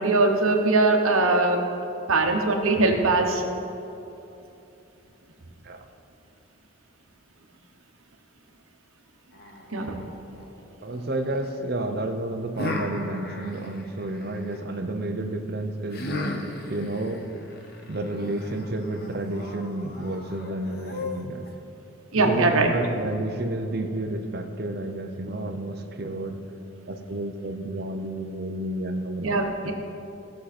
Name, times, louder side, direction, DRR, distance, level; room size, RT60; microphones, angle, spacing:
voice 1, 0.0-1.6 2.1-3.4 9.7-10.0 22.1-22.7 29.2-29.7, right 3 dB, 75° right, 2 dB, 1.1 m, -21 dB
sound 1, 9.3-11.5 12.6-14.6 15.9-21.5, left 2 dB, 45° left, 0.9 m, -37 dB
voice 2, 10.8-16.1 16.7-17.3 17.9-21.5 22.1-26.4 26.9-29.4, right 1 dB, 45° right, 6 dB, 0.7 m, -30 dB
17.5 x 6.4 x 4.3 m, 2.8 s
head